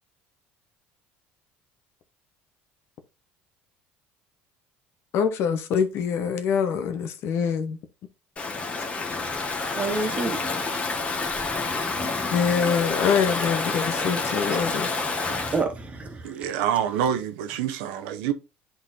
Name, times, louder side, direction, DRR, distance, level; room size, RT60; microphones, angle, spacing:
voice 1, 5.1-7.8 12.3-14.9, left 7 dB, 60° left, 1.1 m, -24 dB
Stream / Ocean, 8.4-15.6, left 3 dB, 25° left, 1.5 m, -28 dB
voice 2, 9.7-10.4 11.4-12.6 13.9-16.5, right 3 dB, 30° right, 1.6 m, -33 dB
voice 3, 16.2-18.3, right 9 dB, 90° right, 0.8 m, -27 dB
10.5 x 4.0 x 2.7 m
cardioid pair, 110°, 5 cm